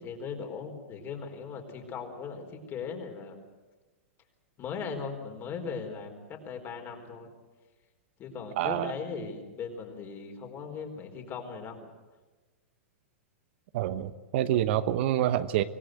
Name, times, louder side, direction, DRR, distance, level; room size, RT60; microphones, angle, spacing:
voice 1, 0.0-3.4 4.6-7.3 8.2-11.9, left 5 dB, 30° left, 4 dB, 4.4 m, -38 dB
voice 2, 8.6-8.9 13.7-15.6, right 12 dB, 55° right, 12 dB, 1.1 m, -27 dB
25.0 x 18.0 x 8.0 m, 1.2 s
hypercardioid pair, 115°, 7 cm